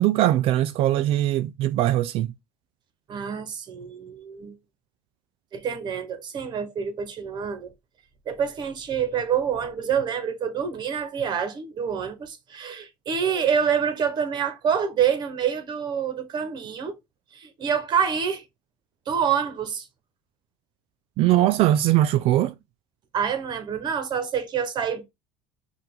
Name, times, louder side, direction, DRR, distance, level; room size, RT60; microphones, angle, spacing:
voice 1, 0.0-2.3 21.2-22.5, right 13 dB, 60° right, 0.4 m, -21 dB
voice 2, 3.1-4.5 5.5-7.7 8.3-17.0 17.3-18.4 19.1-19.9 23.1-25.0, right 7 dB, 40° right, 1.3 m, -27 dB
5.6 x 2.6 x 3.6 m
supercardioid pair, 115°, 11 cm